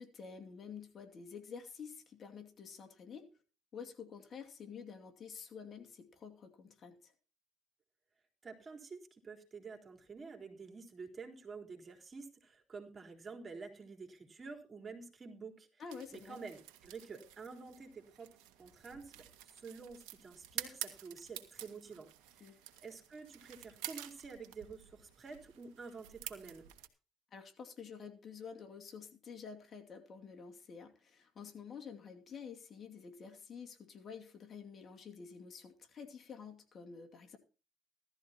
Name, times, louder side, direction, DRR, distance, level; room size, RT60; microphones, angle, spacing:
voice 1, 0.0-3.3 3.7-7.1 15.8-16.4 22.4-22.6 27.3-37.4, left 6 dB, 50° left, 5 dB, 2.4 m, -49 dB
voice 2, 8.4-15.8 16.1-22.1 22.3-26.6, right 4 dB, 35° right, 3 dB, 3.9 m, -49 dB
sound 1, 15.9-26.9, right 12 dB, 80° right, 1.9 m, -49 dB
16.5 x 13.5 x 2.9 m, 0.35 s
supercardioid pair, 65°, 0 cm